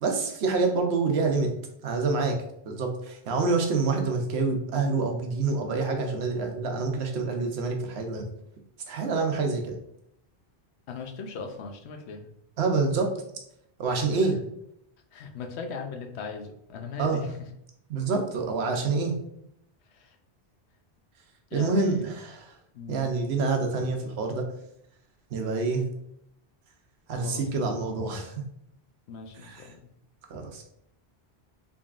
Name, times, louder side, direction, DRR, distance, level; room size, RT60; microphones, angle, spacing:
voice 1, 0.0-1.5 1.8-2.3 2.7-8.3 8.9-9.8 12.6-13.1 13.8-14.4 17.0-17.4 17.9-19.1 21.5-22.5 22.9-24.4 25.3-25.9 27.1-28.3 29.3-29.7 30.3-30.6, right 4 dB, 75° right, 3 dB, 0.9 m, -27 dB
voice 2, 10.9-12.3 14.1-14.2 15.1-17.2 20.0-20.1 21.5-22.1 22.7-23.1 27.2-27.6 28.0-28.1 29.1-29.7, left 5 dB, 85° left, 4 dB, 0.9 m, -39 dB
3.8 x 3.5 x 2.4 m, 0.74 s
omnidirectional pair, 1.1 m